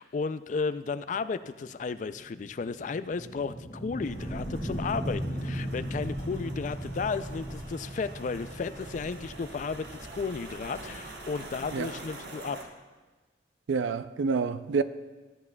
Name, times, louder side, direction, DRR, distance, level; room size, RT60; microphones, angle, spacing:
voice 1, 0.0-9.9 10.1-12.6, left 4 dB, 40° left, 0.3 m, -33 dB
sound 1, 1.1-11.8, equal, 5° right, 2.1 m, -38 dB
sound 2, 4.0-12.6, right 1 dB, 60° right, 1.2 m, -44 dB
voice 2, 13.7-14.8, right 5 dB, 85° right, 0.4 m, -28 dB
13.0 x 9.4 x 2.3 m
head